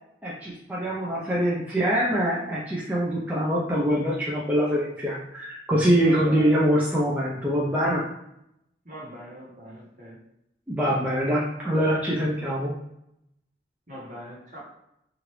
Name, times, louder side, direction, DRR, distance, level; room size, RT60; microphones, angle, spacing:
voice 1, 0.2-8.0 10.7-12.7, equal, 10° right, -6 dB, 0.4 m, -24 dB
voice 2, 6.0-6.6 8.8-10.2 13.9-14.6, equal, 45° right, -5 dB, 1.0 m, -41 dB
3.1 x 2.5 x 2.9 m, 0.81 s
head